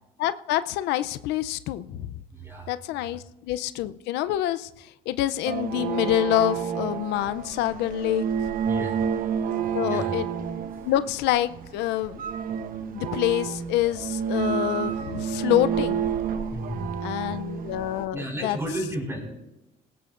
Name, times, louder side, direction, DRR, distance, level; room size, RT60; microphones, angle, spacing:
voice 1, 0.2-2.1 2.7-8.3 9.7-10.3 10.8-12.2 12.9-16.0 17.0-18.6, left 14 dB, 90° left, 13 dB, 0.5 m, -26 dB
voice 2, 2.3-2.7 8.7-9.1 9.8-10.1 10.7-10.9 16.5-17.3 18.1-19.2, right 1 dB, 15° right, 0 dB, 5.5 m, -33 dB
sound 1, 5.4-18.0, right 7 dB, 55° right, 0.9 m, -30 dB
18.5 x 16.5 x 2.5 m, 0.90 s
cardioid pair, 110°, 17 cm